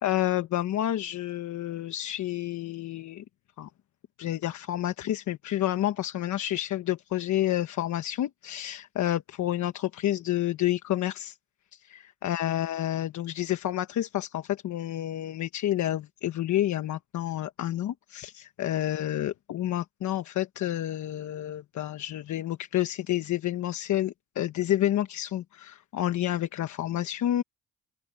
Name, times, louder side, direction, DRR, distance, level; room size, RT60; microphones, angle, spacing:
voice 1, 0.0-3.2 3.6-3.7 4.2-11.4 11.7-27.4, left 13 dB, 70° left, 1.2 m, -29 dB
open air
cardioid pair, 90°, 30 cm